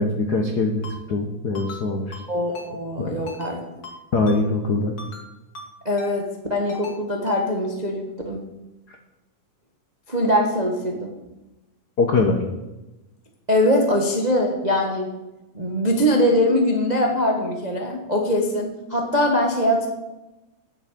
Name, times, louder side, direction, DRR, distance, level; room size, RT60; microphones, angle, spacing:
voice 1, 0.0-2.2 3.0-3.1 4.1-5.0 12.0-12.4, left 3 dB, 90° left, 3 dB, 0.8 m, -22 dB
Ringtone, 0.8-1.0 1.5-1.8 2.1-2.3 2.5-2.7 3.3-3.5 3.8-4.0 4.3-4.4 5.0-5.2 5.5-5.7 6.0-6.1 6.7-7.0 7.3-7.4, left 3 dB, 40° left, 2.4 m, -38 dB
voice 2, 2.3-3.6 5.8-8.4 10.1-11.1 13.5-15.1 15.5-19.9, left 1 dB, 80° right, 1 dB, 0.3 m, -22 dB
9.8 x 7.7 x 8.5 m, 1.0 s
omnidirectional pair, 3.6 m